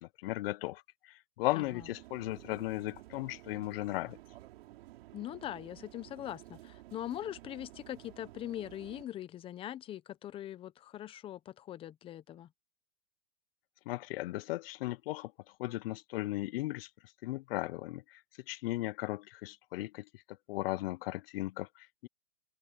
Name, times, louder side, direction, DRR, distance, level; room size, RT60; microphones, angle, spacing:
voice 1, 0.0-4.2 13.9-15.3 15.6-16.9 17.2-18.2 18.5-20.1 20.5-22.1, left 18 dB, 55° left, 0.5 m, -36 dB
sound 1, 1.6-9.1, right 16 dB, 60° right, 6.1 m, -53 dB
voice 2, 5.1-12.5, left 12 dB, 15° left, 0.7 m, -42 dB
hypercardioid pair, 150°, 35 cm